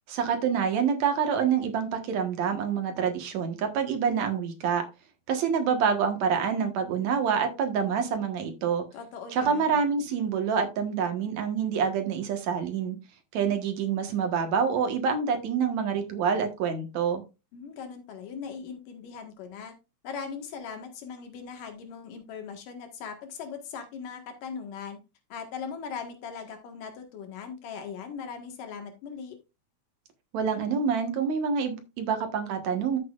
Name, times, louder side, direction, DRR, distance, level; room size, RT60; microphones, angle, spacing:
voice 1, 0.1-4.8 5.3-8.8 9.3-13.0 13.3-17.2 30.3-33.0, right 6 dB, 65° right, 5 dB, 2.6 m, -27 dB
voice 2, 8.9-9.8 17.5-19.7 20.0-25.0 25.3-29.4, left 6 dB, 85° left, 5 dB, 3.2 m, -39 dB
13.0 x 7.3 x 2.5 m, 0.28 s
omnidirectional pair, 3.6 m